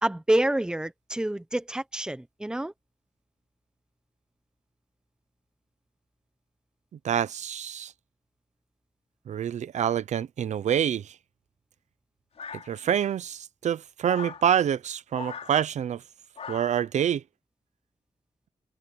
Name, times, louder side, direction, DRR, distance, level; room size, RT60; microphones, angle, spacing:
voice 1, 0.0-2.7, right 1 dB, 5° right, 0.9 m, -27 dB
voice 2, 7.0-7.9 9.3-11.2 12.5-16.0 16.5-17.2, right 9 dB, 80° right, 0.7 m, -27 dB
sound 1, 12.4-13.1 14.1-14.5 15.1-15.6 16.4-16.9, left 6 dB, 60° left, 3.9 m, -40 dB
open air
wide cardioid pair, 155°, 12 cm